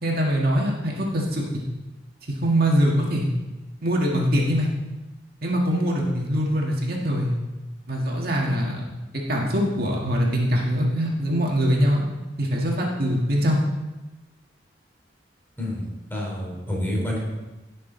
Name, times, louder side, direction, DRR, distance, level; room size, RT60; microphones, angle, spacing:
voice 1, 0.0-1.5 2.4-3.3 3.8-4.7 5.4-7.3 7.9-8.8 9.1-12.0 12.4-13.6, equal, 60° right, -2 dB, 1.9 m, -23 dB
voice 2, 15.6-17.2, left 1 dB, 15° left, -4 dB, 3.8 m, -28 dB
16.5 x 6.5 x 4.0 m, 1.1 s
head